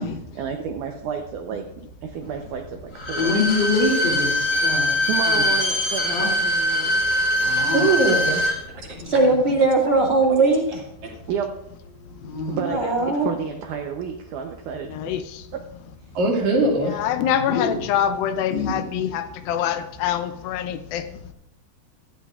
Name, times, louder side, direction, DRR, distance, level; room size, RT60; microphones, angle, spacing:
voice 1, 0.0-1.7 2.0-3.4 5.1-7.0 11.3-11.5 12.5-15.0 15.5-15.6, right 7 dB, 75° right, 4 dB, 1.9 m, -31 dB
Bowed string instrument, 2.9-8.6 8.9-9.0, left 1 dB, 35° left, 2.0 m, -22 dB
voice 2, 3.2-4.9 5.3-5.4 6.1-6.3 7.4-7.9 9.0-9.4 12.2-12.6 17.4-17.8 18.5-18.8, left 3 dB, 55° left, -2 dB, 4.1 m, -25 dB
voice 3, 7.7-8.9 11.0-11.1 16.2-17.0, right 2 dB, 55° right, -1 dB, 3.5 m, -22 dB
voice 4, 9.0-10.8 12.6-13.3, right 2 dB, 30° right, -2 dB, 1.1 m, -19 dB
voice 5, 14.9-15.4 16.8-21.1, left 9 dB, 80° left, 10 dB, 2.3 m, -25 dB
16.0 x 12.5 x 2.4 m, 0.83 s
omnidirectional pair, 4.4 m